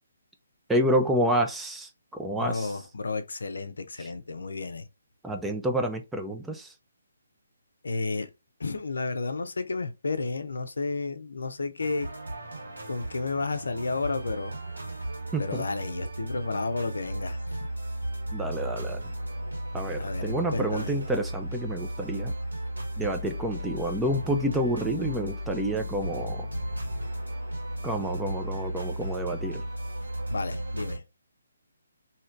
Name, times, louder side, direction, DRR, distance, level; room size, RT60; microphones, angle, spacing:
voice 1, 0.7-2.7 4.0-4.1 5.2-6.7 15.3-15.7 18.3-19.1 19.7-22.3 23.0-26.5 27.8-29.6, right 1 dB, 5° right, 0.4 m, -29 dB
voice 2, 2.4-4.9 7.8-8.3 8.6-12.1 12.9-14.6 15.4-17.7 20.0-20.9 30.3-31.0, left 3 dB, 70° left, 0.5 m, -32 dB
sound 1, 11.8-31.0, right 1 dB, 85° right, 1.5 m, -35 dB
3.1 x 2.8 x 2.5 m
figure-of-eight pair, 145°, 0 cm